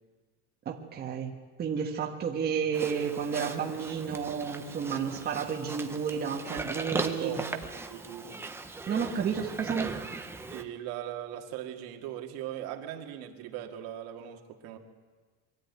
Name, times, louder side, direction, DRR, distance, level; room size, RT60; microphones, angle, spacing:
voice 1, 0.6-1.3 1.6-7.3 8.9-10.0, right 7 dB, 25° right, 0 dB, 1.4 m, -31 dB
Livestock farm animals working animals, 2.7-10.6, right 3 dB, 5° right, 0.7 m, -38 dB
voice 2, 6.8-8.4 10.5-14.8, right 11 dB, 70° right, 3 dB, 2.1 m, -40 dB
23.0 x 13.0 x 9.4 m, 1.4 s
cardioid pair, 175°, 38 cm